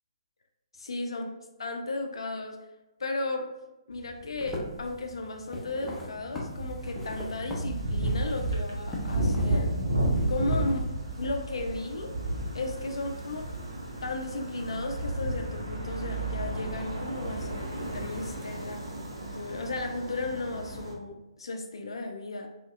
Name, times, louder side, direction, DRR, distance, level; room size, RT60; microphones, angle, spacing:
voice 1, 0.7-1.2 1.6-2.7 3.0-3.5 3.9-9.7 10.3-10.9 11.2-12.1 12.5-13.5 14.0-22.5, left 2 dB, 65° left, 4 dB, 0.4 m, -35 dB
sound 1, 3.9-11.3, left 1 dB, 10° left, 0.8 m, -42 dB
sound 2, 6.2-20.9, right 1 dB, 70° right, 1.0 m, -32 dB
3.9 x 2.8 x 2.4 m, 0.99 s
figure-of-eight pair, 130°, 3 cm